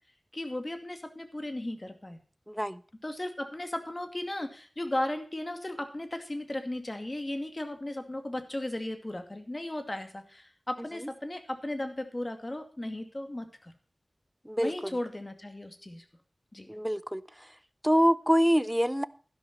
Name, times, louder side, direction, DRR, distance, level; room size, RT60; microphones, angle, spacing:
voice 1, 0.3-2.2 3.0-13.7 14.6-16.0 16.5-16.7, left 1 dB, 30° left, 6 dB, 2.4 m, -36 dB
voice 2, 2.5-2.8 14.5-14.7 16.7-17.2 17.8-19.0, equal, 5° right, 16 dB, 0.7 m, -25 dB
12.0 x 11.5 x 4.3 m, 0.40 s
wide cardioid pair, 60°, 0 cm